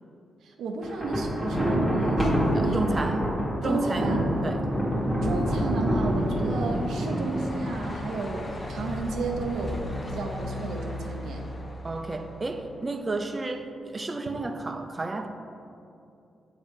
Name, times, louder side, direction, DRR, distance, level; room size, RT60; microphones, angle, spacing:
voice 1, 0.4-3.0 3.6-4.2 5.2-9.8 10.1-11.4, right 3 dB, 85° right, 2 dB, 0.5 m, -33 dB
Thunder, 0.8-8.1, equal, 5° left, 1.3 m, -26 dB
voice 2, 2.5-3.3 3.6-4.1 4.4-4.7 11.8-15.3, right 2 dB, 30° right, 6 dB, 0.4 m, -31 dB
Truck, 4.2-13.3, left 1 dB, 25° left, 0.6 m, -38 dB
7.3 x 2.7 x 5.1 m, 2.7 s
cardioid pair, 90°, 0 cm